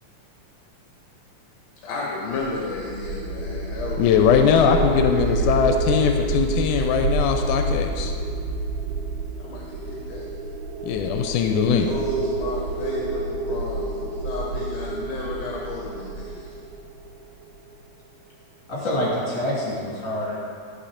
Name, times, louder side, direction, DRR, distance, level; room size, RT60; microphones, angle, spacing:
voice 1, 1.8-5.6 9.4-10.3 11.8-16.5, left 3 dB, 65° left, -3 dB, 2.0 m, -33 dB
sound 1, 2.3-17.4, right 2 dB, 80° right, 2.2 m, -28 dB
voice 2, 4.0-8.1 10.8-11.9, left 7 dB, 90° left, 5 dB, 2.1 m, -20 dB
voice 3, 18.7-20.4, left 1 dB, 40° left, -7 dB, 3.2 m, -26 dB
11.0 x 5.6 x 5.0 m, 2.2 s
omnidirectional pair, 3.5 m